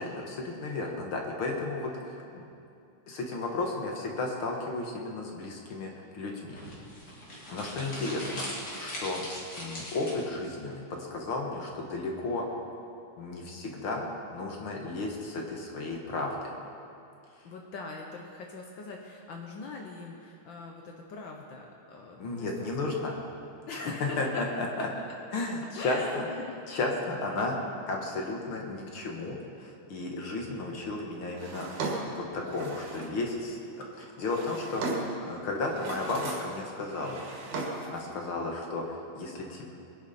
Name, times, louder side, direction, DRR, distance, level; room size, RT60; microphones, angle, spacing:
voice 1, 0.0-2.4 3.1-6.6 7.5-8.5 8.8-9.3 9.6-12.4 13.2-16.6 22.2-23.2 23.7-24.7 25.3-26.3 26.7-27.6 27.9-37.2 37.8-39.7, left 2 dB, 50° left, 0 dB, 1.9 m, -34 dB
sound 1, 6.5-10.5, left 1 dB, 35° left, 2.7 m, -40 dB
voice 2, 7.9-8.4 17.4-22.5 23.7-24.4 25.8-26.6 38.2-38.5, left 3 dB, 85° left, 1 dB, 1.0 m, -42 dB
Drawer open or close, 31.4-33.2 34.0-35.3 35.7-36.6 36.9-38.0, right 3 dB, 80° right, 3.4 m, -36 dB
22.0 x 10.5 x 4.3 m, 2.6 s
omnidirectional pair, 3.6 m